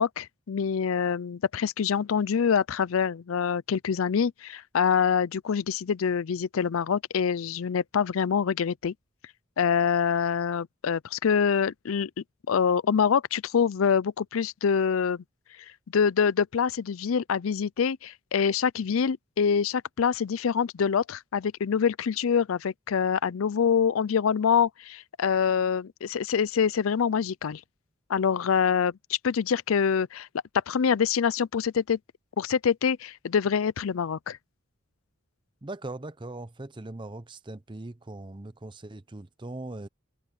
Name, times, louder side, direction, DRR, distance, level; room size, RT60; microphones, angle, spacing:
voice 1, 0.0-8.9 9.6-12.1 12.5-15.2 15.9-27.6 28.1-30.3 30.7-32.0 32.4-34.4, left 6 dB, 80° left, 0.5 m, -25 dB
voice 2, 35.6-39.9, right 2 dB, 25° right, 0.7 m, -40 dB
head